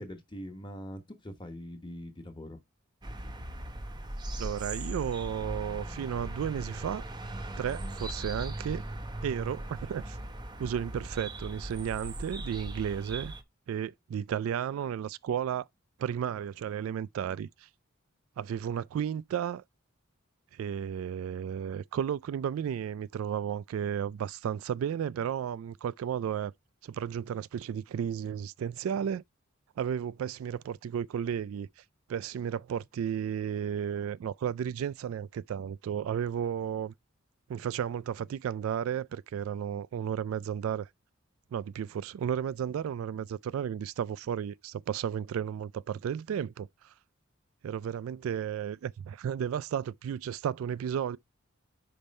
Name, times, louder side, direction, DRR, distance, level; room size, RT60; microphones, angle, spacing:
voice 1, 0.0-2.6, equal, 25° left, 1.2 m, -42 dB
sound 1, 3.0-13.4, right 1 dB, 20° right, 0.8 m, -39 dB
voice 2, 4.4-7.0 7.6-8.8 9.2-10.2 10.6-13.3 13.7-15.7 16.0-17.7 18.4-19.6 20.5-26.5 26.8-29.2 29.8-31.8 32.1-36.9 37.5-40.9 41.5-46.9 47.6-51.2, right 8 dB, 80° right, 0.3 m, -33 dB
5.3 x 4.2 x 5.3 m
head